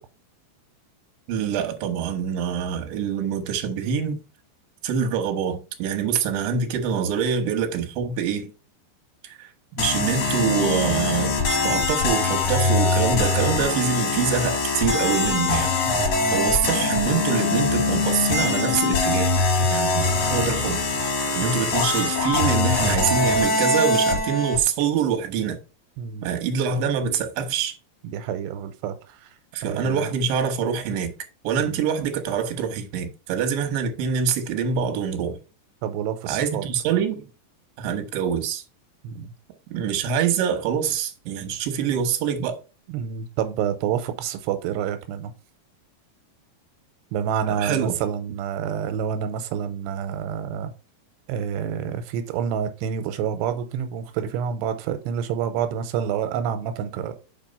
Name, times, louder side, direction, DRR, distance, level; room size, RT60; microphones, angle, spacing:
voice 1, 1.3-4.2 4.8-8.5 9.2-11.4 11.6-15.7 16.3-19.4 19.7-20.8 21.4-25.6 26.2-27.7 29.5-31.1 31.4-35.4 36.3-37.3 37.8-38.6 39.7-42.6 47.5-47.9, right 7 dB, 70° right, 2.6 m, -25 dB
sound 1, 9.8-24.6, left 3 dB, 65° left, 1.6 m, -22 dB
voice 2, 15.9-16.4 21.4-21.6 26.0-26.3 28.0-29.3 29.6-30.1 31.6-31.8 35.8-36.6 39.0-39.3 42.9-45.3 47.1-50.7 51.3-57.1, right 8 dB, 90° right, 2.7 m, -28 dB
5.8 x 4.6 x 5.2 m
omnidirectional pair, 4.8 m